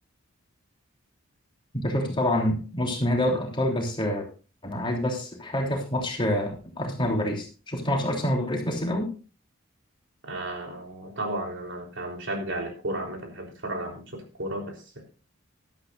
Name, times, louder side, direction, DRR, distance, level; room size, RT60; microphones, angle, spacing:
voice 1, 1.7-4.3 4.6-9.1, left 1 dB, 25° left, 1 dB, 3.2 m, -27 dB
voice 2, 10.2-15.0, right 1 dB, 60° right, 2 dB, 3.7 m, -34 dB
16.0 x 12.0 x 2.5 m, 0.35 s
head